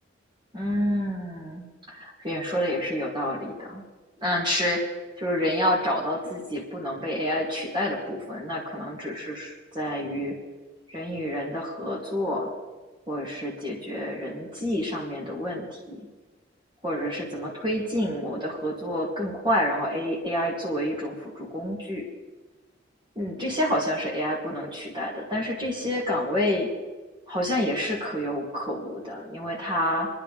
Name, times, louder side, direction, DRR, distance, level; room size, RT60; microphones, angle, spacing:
voice 1, 0.5-3.8 4.2-4.8 5.2-10.3 10.9-12.5 13.1-16.0 16.8-22.1 23.2-26.7 27.3-30.1, equal, 25° right, -4 dB, 2.5 m, -28 dB
28.5 x 10.5 x 3.4 m, 1.2 s
head